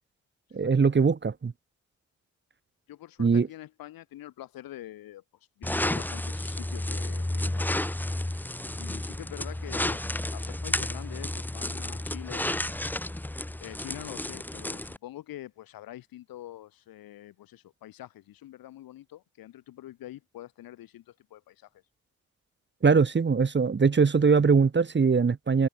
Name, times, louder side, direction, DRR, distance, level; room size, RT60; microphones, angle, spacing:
voice 1, 0.5-1.5 3.2-3.5 22.8-25.7, right 5 dB, 30° right, 1.0 m, -22 dB
voice 2, 2.9-5.2 5.6-7.9 8.8-10.0 10.3-12.4 13.6-21.7, left 14 dB, 80° left, 1.5 m, -45 dB
sound 1, 5.6-15.0, left 1 dB, 5° left, 0.6 m, -32 dB
hypercardioid pair, 40°, 35 cm